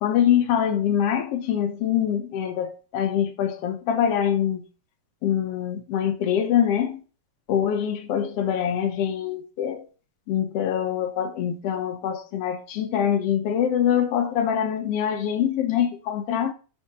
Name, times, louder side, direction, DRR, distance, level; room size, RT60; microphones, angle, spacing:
voice 1, 0.0-4.7 5.2-7.0 7.5-9.9 10.3-16.5, left 9 dB, 85° left, 1.3 m, -24 dB
7.3 x 5.5 x 3.7 m
omnidirectional pair, 3.7 m